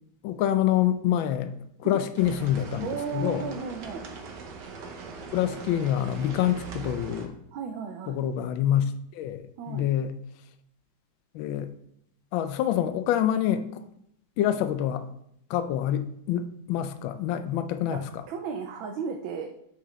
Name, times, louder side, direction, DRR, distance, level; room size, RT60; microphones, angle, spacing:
voice 1, 0.2-1.5 1.8-3.4 5.3-7.4 8.1-10.1 11.3-11.7 12.3-13.8 14.4-15.1 15.5-18.2, left 11 dB, 80° left, 10 dB, 1.4 m, -26 dB
sound 1, 2.2-7.3, right 5 dB, 65° right, 1.5 m, -41 dB
voice 2, 2.8-4.0 7.5-8.2 9.6-9.9 17.9-18.0 18.3-19.5, right 6 dB, 80° right, 3 dB, 1.5 m, -34 dB
8.1 x 6.2 x 3.2 m, 0.71 s
omnidirectional pair, 2.2 m